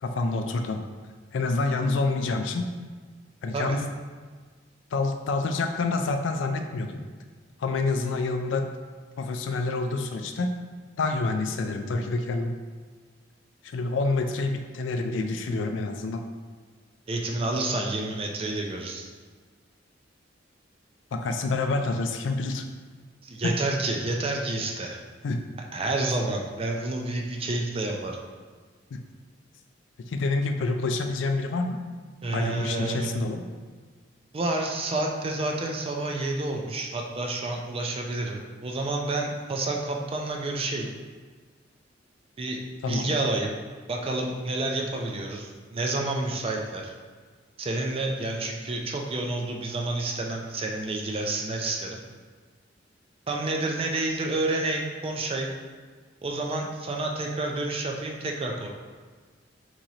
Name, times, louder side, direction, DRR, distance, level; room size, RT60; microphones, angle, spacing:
voice 1, 0.0-0.8 1.3-2.7 3.4-3.9 4.9-7.0 7.6-8.7 9.2-10.5 11.0-12.5 13.6-16.2 21.1-22.6 23.4-23.5 25.2-25.4 28.9-29.0 30.1-31.8 32.3-33.4 42.8-43.1, left 3 dB, 80° left, 5 dB, 0.4 m, -27 dB
voice 2, 17.1-19.1 23.2-25.0 25.7-28.2 32.2-33.1 34.3-40.9 42.4-42.6 42.9-43.6 43.9-46.9 47.6-52.0 53.3-55.5 56.2-58.7, right 2 dB, 30° right, 1 dB, 0.4 m, -29 dB
3.0 x 2.8 x 3.9 m, 1.5 s
head